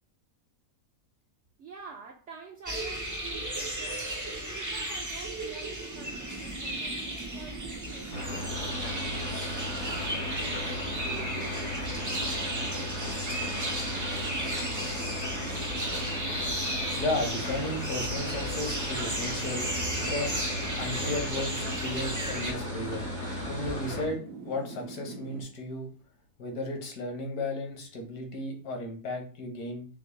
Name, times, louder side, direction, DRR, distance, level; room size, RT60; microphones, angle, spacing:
voice 1, 1.6-13.2, right 5 dB, 65° right, 0.7 m, -48 dB
sound 1, 2.7-22.5, right 1 dB, 30° right, 0.3 m, -35 dB
sound 2, 5.9-25.4, right 4 dB, 85° right, 1.4 m, -42 dB
sound 3, 8.1-24.1, left 2 dB, 85° left, 1.7 m, -36 dB
voice 2, 17.0-20.4 20.8-23.0 23.5-25.9 26.4-29.9, left 2 dB, 70° left, 1.6 m, -34 dB
5.9 x 2.1 x 3.1 m
omnidirectional pair, 1.7 m